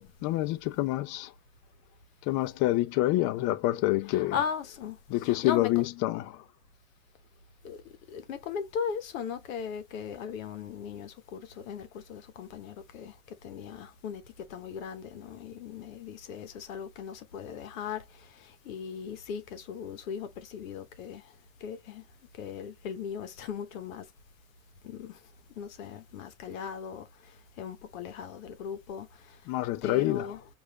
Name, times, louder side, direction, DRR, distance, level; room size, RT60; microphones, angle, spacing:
voice 1, 0.0-1.3 2.2-4.4 5.1-6.4 29.5-30.3, left 17 dB, 50° left, 0.5 m, -27 dB
voice 2, 4.1-5.8 7.6-7.8 8.1-13.2 13.4-14.2 14.5-21.2 21.6-22.0 22.4-24.0 24.8-25.2 25.6-27.1 27.6-29.4 29.8-30.4, left 7 dB, 80° left, 1.0 m, -38 dB
4.8 x 2.6 x 3.9 m
hypercardioid pair, 95°, 40 cm